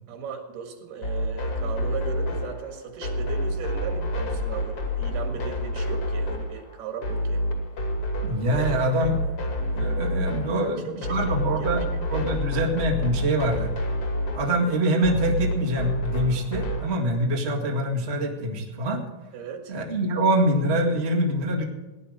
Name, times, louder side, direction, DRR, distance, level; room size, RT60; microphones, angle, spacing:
voice 1, 0.1-7.4 10.5-11.2 11.6-11.7 12.1-12.4 19.3-19.8, right 6 dB, 70° right, 5 dB, 3.4 m, -37 dB
sound 1, 1.0-17.0, equal, 40° left, 2.6 m, -28 dB
voice 2, 8.2-9.2 9.7-13.7 14.3-19.0 19.7-21.6, right 1 dB, 45° right, 0 dB, 0.8 m, -25 dB
17.5 x 10.5 x 4.9 m, 1.2 s
omnidirectional pair, 4.8 m